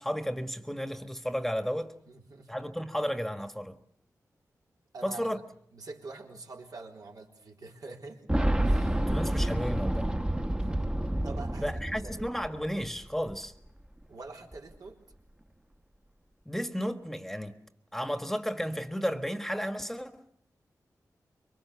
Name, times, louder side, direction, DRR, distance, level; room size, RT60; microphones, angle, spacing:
voice 1, 0.0-1.9 2.5-3.8 5.0-5.4 9.0-10.1 11.6-13.5 16.4-17.6 17.9-20.2, equal, 5° left, 1.5 m, -33 dB
voice 2, 2.1-2.6 4.9-5.4 5.7-8.3 8.6-9.0 10.6-10.7 11.2-11.7 12.0-12.3 14.1-15.0, right 3 dB, 75° right, 3.8 m, -45 dB
Boom, 8.3-13.0 13.3-13.4 14.5-14.6, right 1 dB, 15° right, 1.2 m, -29 dB
26.0 x 23.5 x 7.0 m
wide cardioid pair, 75°, 7 cm